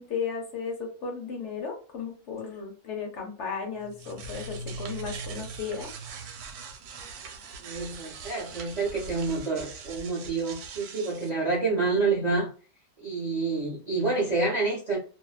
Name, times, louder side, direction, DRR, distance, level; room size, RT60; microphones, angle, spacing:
voice 1, 0.0-5.9, left 5 dB, 60° left, 0.9 m, -35 dB
sound 1, 3.8-11.3, right 4 dB, 90° right, 1.1 m, -41 dB
voice 2, 7.6-12.5 13.0-15.0, right 3 dB, 45° right, 0.5 m, -28 dB
2.6 x 2.2 x 2.3 m
omnidirectional pair, 1.6 m